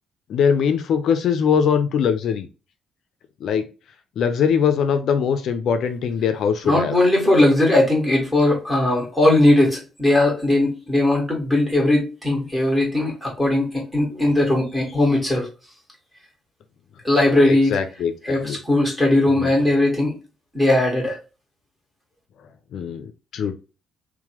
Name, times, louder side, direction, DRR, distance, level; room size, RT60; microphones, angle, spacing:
voice 1, 0.3-2.5 3.4-3.7 4.2-6.9 17.5-18.6 19.4-19.5 22.7-23.5, left 7 dB, 70° left, 9 dB, 0.3 m, -21 dB
voice 2, 6.6-15.5 17.0-17.9 18.2-20.1 20.5-21.2, left 1 dB, 10° right, -3 dB, 1.5 m, -19 dB
2.9 x 2.1 x 2.9 m, 0.32 s
cardioid pair, 90°, 0 cm